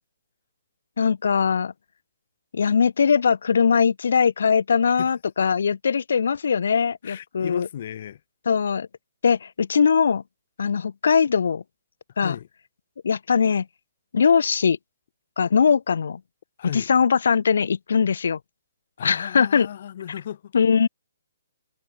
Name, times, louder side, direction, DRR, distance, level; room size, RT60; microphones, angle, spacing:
voice 1, 1.0-1.7 2.5-7.7 8.5-8.9 9.2-10.2 10.6-11.6 12.2-12.3 13.0-13.7 14.1-14.8 15.4-16.2 16.7-18.4 19.0-19.7 20.5-20.9, left 6 dB, 65° left, 7.8 m, -21 dB
voice 2, 7.0-8.2 12.1-12.5 16.6-16.9 19.0-20.5, left 10 dB, 40° left, 7.7 m, -35 dB
hypercardioid pair, 170°, 0 cm